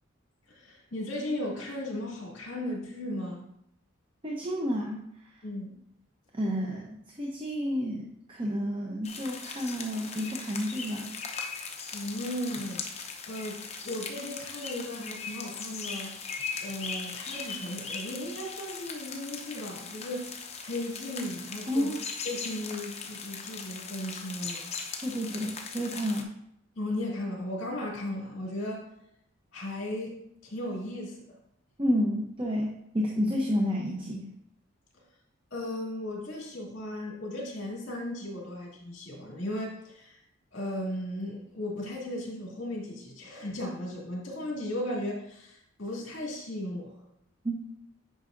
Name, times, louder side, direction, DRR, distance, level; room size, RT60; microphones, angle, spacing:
voice 1, 0.5-3.5 5.4-5.8 11.9-12.8 13.3-16.2 16.6-21.9 22.2-24.7 26.8-28.9 29.5-31.2 35.5-40.2 40.5-47.0, left 1 dB, 60° left, -2 dB, 2.4 m, -36 dB
voice 2, 4.2-5.0 6.3-11.1 21.7-22.0 25.0-26.3 31.8-34.3 47.4-47.5, equal, 25° right, -1 dB, 0.8 m, -30 dB
sound 1, 9.0-26.2, left 5 dB, 30° left, 0.8 m, -39 dB
9.4 x 5.6 x 2.6 m, 0.77 s
head